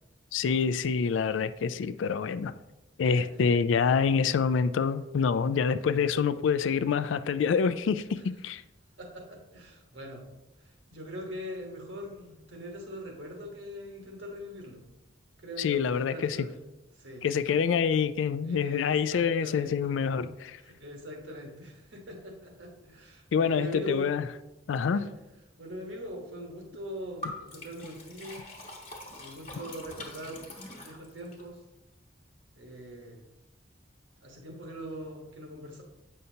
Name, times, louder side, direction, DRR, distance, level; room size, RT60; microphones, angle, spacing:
voice 1, 0.3-2.5 3.0-8.6 15.6-16.4 17.2-20.6 23.3-24.3 24.7-25.0, left 6 dB, 90° left, 0.3 m, -26 dB
voice 2, 9.0-10.2 10.9-14.8 15.4-16.6 16.9-17.2 18.4-20.0 20.6-24.1 24.9-25.1 25.6-28.4 29.2-31.6 32.5-33.2 34.2-35.8, equal, 80° right, 1.3 m, -42 dB
Liquid, 27.2-31.4, left 1 dB, 35° left, 1.1 m, -43 dB
7.7 x 5.5 x 2.8 m
head